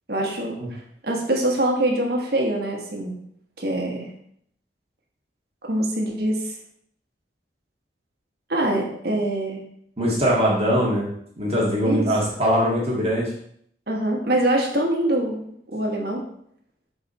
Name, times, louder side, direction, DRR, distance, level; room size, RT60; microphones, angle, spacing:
voice 1, 0.1-3.2 3.6-4.1 5.6-6.5 8.5-9.6 11.8-12.1 13.9-16.2, right 1 dB, 55° right, 0 dB, 1.3 m, -24 dB
voice 2, 10.0-11.1 11.4-13.3, equal, 35° right, -5 dB, 1.8 m, -21 dB
6.6 x 4.0 x 4.3 m, 0.67 s
head